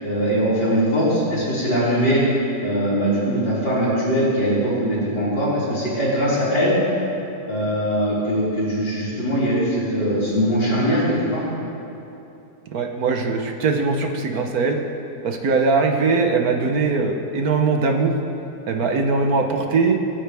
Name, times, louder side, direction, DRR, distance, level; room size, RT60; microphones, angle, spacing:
voice 1, 0.0-2.2 2.6-6.8 7.5-11.4, equal, 75° left, -14 dB, 4.5 m, -21 dB
voice 2, 12.7-14.8 15.2-18.2 18.7-20.0, right 4 dB, 60° right, 4 dB, 1.4 m, -21 dB
26.0 x 9.3 x 3.5 m, 2.8 s
omnidirectional pair, 1.9 m